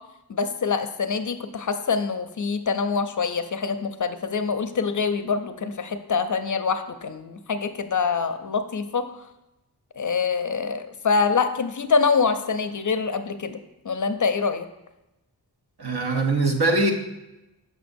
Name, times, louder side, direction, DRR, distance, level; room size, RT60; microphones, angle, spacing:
voice 1, 0.3-9.1 10.0-13.6 13.8-14.7, left 5 dB, 50° left, 9 dB, 0.4 m, -25 dB
voice 2, 15.8-16.9, right 2 dB, 70° right, 4 dB, 0.8 m, -22 dB
6.3 x 6.0 x 2.6 m, 0.95 s
wide cardioid pair, 65°, 39 cm